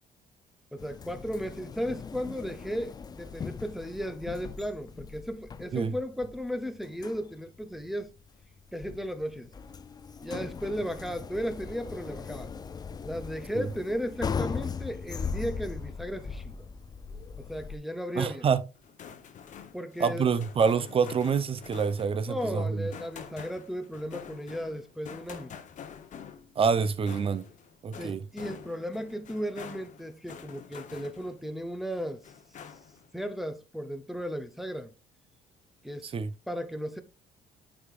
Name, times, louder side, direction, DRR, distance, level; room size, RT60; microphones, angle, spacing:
voice 1, 0.7-8.1 8.7-9.5 10.2-12.5 13.0-16.7 17.4-18.5 19.7-20.3 22.3-25.5 28.0-32.2 33.1-34.9 35.8-36.1 36.5-37.0, equal, ahead, 0.7 m, -35 dB
sound 1, 0.8-17.8, left 6 dB, 25° left, 0.4 m, -39 dB
voice 2, 18.2-18.6 20.0-22.9 26.6-27.5 27.8-28.2 36.0-36.3, right 6 dB, 35° right, 0.7 m, -27 dB
sound 2, 18.7-31.5 31.9-33.1, left 7 dB, 45° left, 0.9 m, -47 dB
8.5 x 5.0 x 2.4 m
cardioid pair, 110°, 17 cm